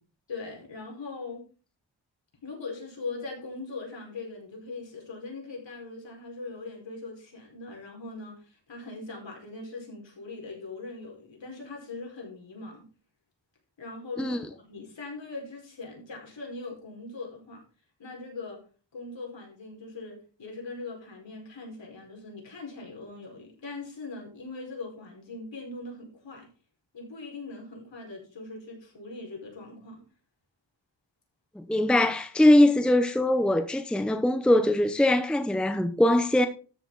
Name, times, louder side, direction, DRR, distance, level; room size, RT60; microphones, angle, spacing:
voice 1, 0.3-1.4 2.4-12.8 13.8-17.6 18.0-18.6 18.9-26.5 26.9-30.0, left 3 dB, 70° left, 4.9 m, -40 dB
voice 2, 31.6-36.5, left 1 dB, ahead, 0.7 m, -22 dB
13.0 x 6.9 x 3.9 m
wide cardioid pair, 160°, 46 cm